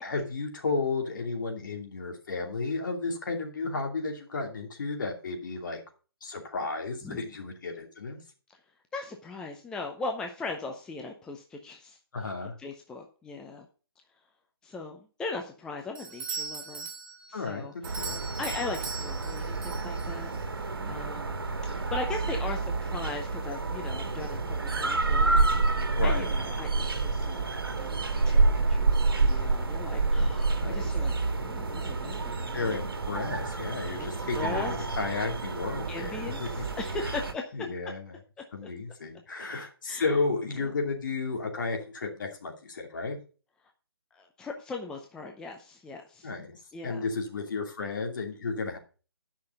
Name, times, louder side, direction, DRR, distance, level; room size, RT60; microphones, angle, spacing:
voice 1, 0.0-5.8 6.2-8.2 12.1-12.5 17.3-17.7 18.0-18.2 20.8-20.9 26.0-26.3 30.6-30.9 32.5-36.6 37.0-37.1 37.5-38.2 38.5-43.2 46.2-48.8, left 3 dB, 55° left, 3 dB, 2.7 m, -33 dB
voice 2, 8.9-12.0 12.6-13.7 14.6-16.9 17.3-18.1 18.4-20.3 20.9-21.4 21.6-27.4 27.8-31.1 31.4-32.8 34.0-34.7 35.9-37.7 38.6-38.7 39.9-40.1 40.6-40.7 44.1-46.3 46.7-47.0, left 3 dB, 5° left, 3 dB, 0.6 m, -39 dB
Doorbell, 16.0-20.4, right 5 dB, 30° right, 3.8 m, -40 dB
sound 1, 17.8-37.3, right 3 dB, 65° right, 1.8 m, -28 dB
10.5 x 5.9 x 5.2 m, 0.37 s
figure-of-eight pair, 145°, 13 cm